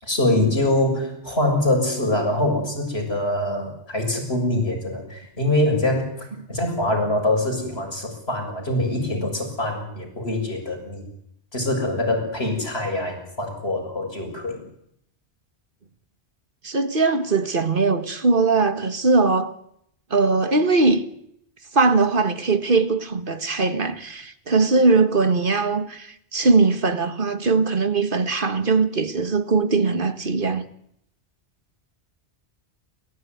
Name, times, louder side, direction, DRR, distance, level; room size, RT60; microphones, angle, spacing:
voice 1, 0.0-11.0 11.5-14.6, left 1 dB, 65° left, 7.0 m, -24 dB
voice 2, 16.6-19.5 20.1-21.0 21.7-30.6, right 3 dB, 50° right, 1.9 m, -20 dB
29.0 x 15.0 x 9.5 m
omnidirectional pair, 1.2 m